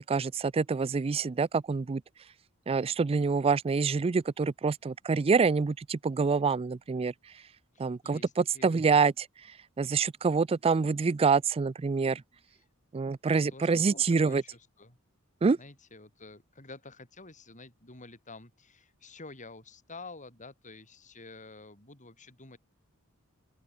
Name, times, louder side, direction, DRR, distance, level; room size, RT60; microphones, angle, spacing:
voice 1, 0.0-2.0 2.7-7.1 7.8-9.3 9.8-12.2 12.9-14.4 15.4-15.6, right 5 dB, 25° right, 0.3 m, -26 dB
voice 2, 7.7-9.0 13.3-15.0 15.6-22.6, left 3 dB, 35° left, 5.0 m, -49 dB
open air
head